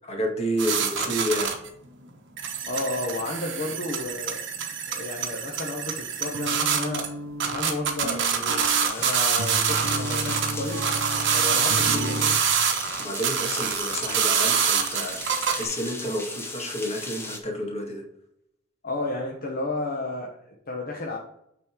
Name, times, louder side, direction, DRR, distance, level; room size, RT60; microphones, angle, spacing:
voice 1, 0.0-1.6 13.0-15.2 15.5-18.0, equal, 30° left, 1 dB, 2.0 m, -30 dB
lisa crash, 0.6-1.7 2.1-2.2 2.4-7.1 7.4-15.6, right 7 dB, 60° right, 1.2 m, -26 dB
voice 2, 2.7-4.4 4.9-7.1 7.4-10.9 11.3-12.4 18.8-21.2, left 2 dB, 45° left, -1 dB, 1.2 m, -32 dB
sound 1, 6.3-12.5, right 1 dB, 75° right, 0.9 m, -33 dB
sound 2, 8.8-17.4, left 2 dB, 10° left, 1.1 m, -37 dB
9.0 x 4.2 x 4.6 m, 0.76 s
head